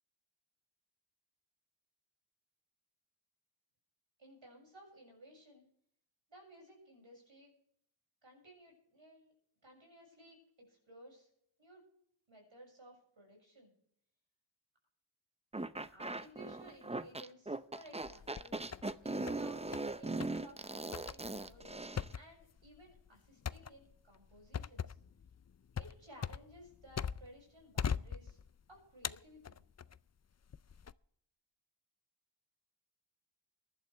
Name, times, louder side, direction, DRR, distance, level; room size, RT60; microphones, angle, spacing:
voice 1, 4.2-5.7 6.3-7.5 8.2-9.3 9.6-11.3 11.6-11.9 12.3-13.7 15.9-18.6 19.0-19.7 20.0-24.9 25.7-28.4 28.7-29.6, equal, 75° right, 0 dB, 6.8 m, -58 dB
sound 1, 15.5-22.1, right 2 dB, 15° right, 0.6 m, -40 dB
sound 2, 18.0-18.9 19.3-19.9 20.2-20.4 20.9-27.4 27.8-28.6 29.0-30.0 30.5-30.9, left 7 dB, 35° left, 0.4 m, -41 dB
22.5 x 11.5 x 3.4 m, 0.70 s
wide cardioid pair, 55°, 46 cm